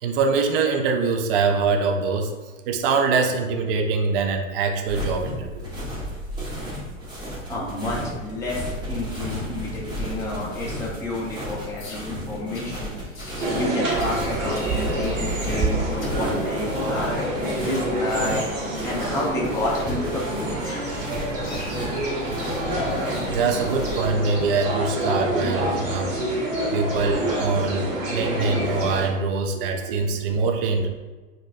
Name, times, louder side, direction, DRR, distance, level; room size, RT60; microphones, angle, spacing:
voice 1, 0.0-2.3 2.7-5.7 23.3-26.1 26.7-30.9, right 4 dB, 45° right, 4 dB, 0.4 m, -23 dB
sound 1, 4.9-24.1, equal, 10° right, 1.0 m, -34 dB
voice 2, 7.5-18.4 18.8-20.5 22.2-22.3 29.5-29.7 30.0-30.2, left 1 dB, 5° left, -4 dB, 0.5 m, -31 dB
sound 2, 11.8-12.1 12.5-12.7 13.1-13.6 14.0-14.2 14.5-14.7 15.0-15.6 16.0-16.2 16.7-17.1 17.6-17.9 18.3-18.6 19.1-19.3 19.8-19.9 20.6-20.9 21.4-21.8, left 3 dB, 85° left, 0.7 m, -43 dB
sound 3, 13.4-29.1, right 1 dB, 70° right, 1.2 m, -27 dB
3.9 x 2.5 x 2.4 m, 1.3 s
figure-of-eight pair, 95°, 40 cm